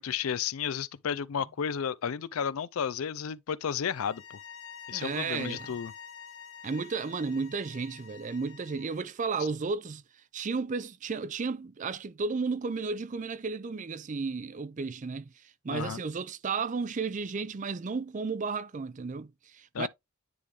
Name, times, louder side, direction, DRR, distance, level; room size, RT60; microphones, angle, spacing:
voice 1, 0.0-4.4 4.9-5.9 15.7-16.0 19.7-19.9, left 7 dB, 90° left, 0.4 m, -32 dB
sound 1, 3.9-9.1, left 7 dB, 60° left, 1.2 m, -48 dB
voice 2, 4.9-5.7 6.6-10.0 10.3-15.3 15.6-19.9, right 4 dB, 35° right, 0.4 m, -33 dB
9.6 x 3.4 x 3.2 m
head